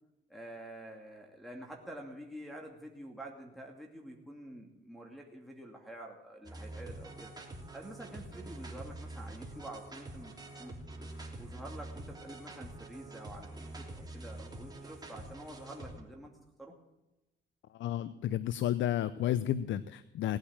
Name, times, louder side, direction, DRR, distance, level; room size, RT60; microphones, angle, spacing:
voice 1, 0.3-7.3 7.7-10.3 10.6-10.8 11.4-16.7, right 1 dB, ahead, -1 dB, 2.5 m, -48 dB
sound 1, 6.5-16.0, right 2 dB, 20° right, 3.2 m, -46 dB
voice 2, 17.7-20.4, left 12 dB, 70° left, 15 dB, 0.6 m, -32 dB
18.5 x 8.8 x 8.8 m, 0.97 s
cardioid pair, 90°, 20 cm